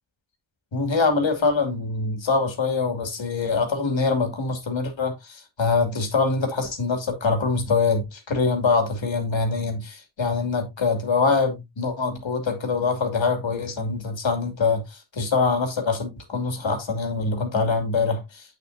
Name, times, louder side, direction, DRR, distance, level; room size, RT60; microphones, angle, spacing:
voice 1, 0.7-18.6, left 4 dB, 80° left, 2.7 m, -24 dB
8.2 x 7.8 x 2.7 m
cardioid pair, 60°, 45 cm